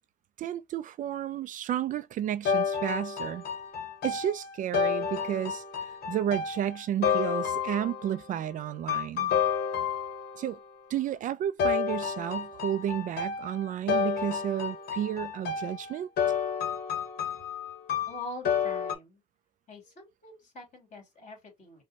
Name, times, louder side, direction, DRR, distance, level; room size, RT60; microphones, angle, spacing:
voice 1, 0.4-3.4 4.0-9.3 10.4-10.6 10.9-16.1, right 10 dB, 50° right, 0.4 m, -32 dB
sound 1, 2.4-8.2 8.9-10.5 11.6-18.9, left 7 dB, 65° left, 1.1 m, -30 dB
voice 2, 18.1-19.2 19.7-21.8, left 1 dB, 45° left, 2.7 m, -44 dB
5.1 x 2.2 x 2.7 m
cardioid pair, 110°, 17 cm